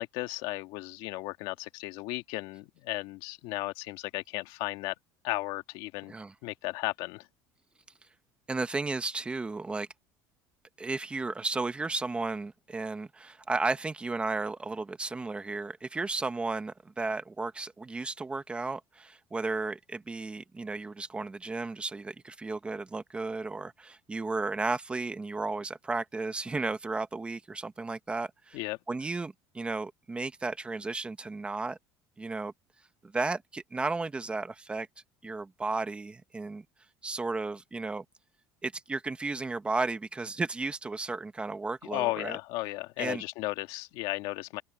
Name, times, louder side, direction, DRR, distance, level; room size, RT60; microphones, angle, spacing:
voice 1, 0.0-4.9 5.2-6.1 6.4-7.3 28.5-28.8 41.9-44.6, left 20 dB, 70° left, 1.8 m, -35 dB
voice 2, 8.5-9.9 10.8-28.6 28.9-31.8 32.2-32.5 33.0-34.9 35.2-36.6 37.0-38.0 38.6-42.4 43.0-43.2, right 3 dB, 10° right, 1.0 m, -34 dB
open air
cardioid pair, 150°, 9 cm